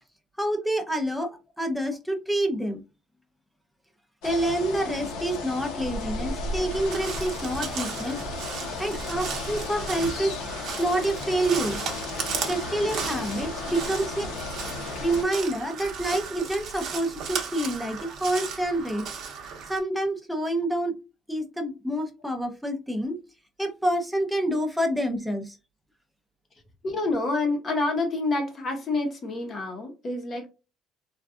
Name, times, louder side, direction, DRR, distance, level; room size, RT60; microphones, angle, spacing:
voice 1, 0.4-1.3 1.6-2.8 4.2-8.2 8.8-10.3 10.8-11.8 12.4-14.3 15.0-19.1 19.7-21.0 21.3-23.2 23.6-25.6, right 1 dB, ahead, 0.6 m, -27 dB
sound 1, 4.2-15.2, left 3 dB, 80° left, 0.8 m, -34 dB
Crow, 6.7-19.8, right 6 dB, 50° right, 0.8 m, -36 dB
voice 2, 26.8-30.5, left 2 dB, 30° left, 0.8 m, -27 dB
3.7 x 2.3 x 2.4 m
cardioid pair, 160°, 0 cm